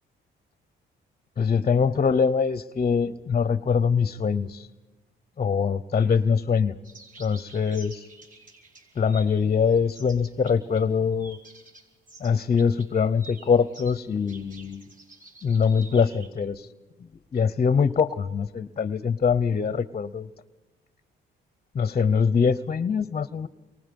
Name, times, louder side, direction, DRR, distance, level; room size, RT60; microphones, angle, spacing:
voice 1, 1.4-4.7 5.4-6.7 7.2-8.0 9.0-11.4 12.2-14.8 15.4-16.7 17.3-20.3 21.7-23.5, left 6 dB, 35° left, 17 dB, 0.8 m, -23 dB
sound 1, 6.8-10.8 11.2-16.3, right 2 dB, 40° right, 4.9 m, -50 dB
29.0 x 23.5 x 5.4 m, 1.1 s
cardioid pair, 90°, 20 cm